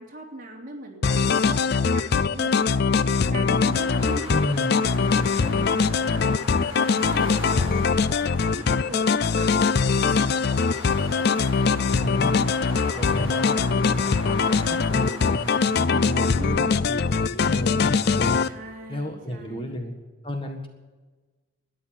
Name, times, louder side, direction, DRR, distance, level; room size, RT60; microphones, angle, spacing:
voice 1, 0.0-6.2 6.5-10.3 16.3-16.9 18.5-19.8, right 1 dB, 40° right, -1 dB, 3.4 m, -41 dB
sound 1, 1.0-18.5, left 5 dB, 50° left, 0.5 m, -22 dB
sound 2, 3.7-16.5, left 2 dB, 70° left, 4.5 m, -38 dB
voice 2, 4.3-4.7 11.6-12.4 13.0-13.7 14.0-18.4 18.9-19.9 20.2-20.7, equal, 25° left, 4 dB, 1.6 m, -33 dB
13.0 x 10.0 x 8.9 m, 1.3 s
head